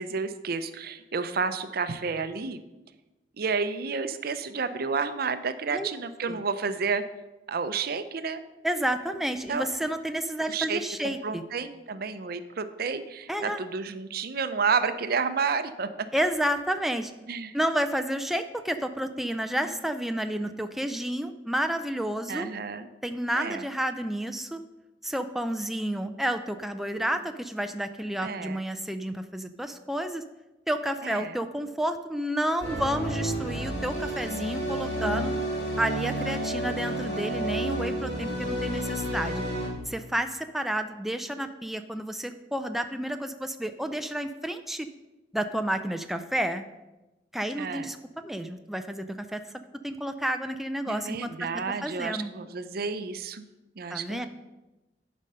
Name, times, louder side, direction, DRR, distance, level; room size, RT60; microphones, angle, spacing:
voice 1, 0.0-2.6 3.4-7.0 7.5-8.4 9.5-9.7 10.5-16.1 17.3-17.6 22.3-22.9 23.3-23.7 28.2-28.6 31.0-31.3 47.6-47.9 50.9-53.5 53.8-54.3, right 5 dB, 60° right, 11 dB, 0.6 m, -30 dB
voice 2, 8.6-11.4 13.3-13.6 16.1-17.1 17.5-22.5 23.0-24.6 25.0-30.2 30.7-35.3 35.8-39.4 39.9-44.9 45.3-46.6 47.3-51.3 51.8-52.3 53.9-54.3, right 1 dB, ahead, 7 dB, 0.3 m, -30 dB
sound 1, 32.6-39.7, right 1 dB, 85° left, 3.9 m, -31 dB
11.0 x 5.2 x 5.6 m, 1.1 s
head